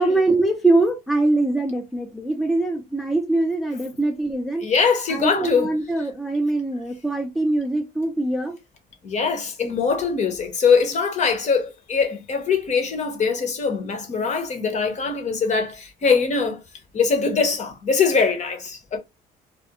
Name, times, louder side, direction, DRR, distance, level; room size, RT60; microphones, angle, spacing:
voice 1, 0.0-4.7 5.1-8.6, right 2 dB, ahead, 0.4 m, -22 dB
voice 2, 4.6-5.8 9.0-16.6 16.9-19.0, left 5 dB, 45° left, 0.8 m, -22 dB
2.4 x 2.2 x 2.7 m
cardioid pair, 110°, 17 cm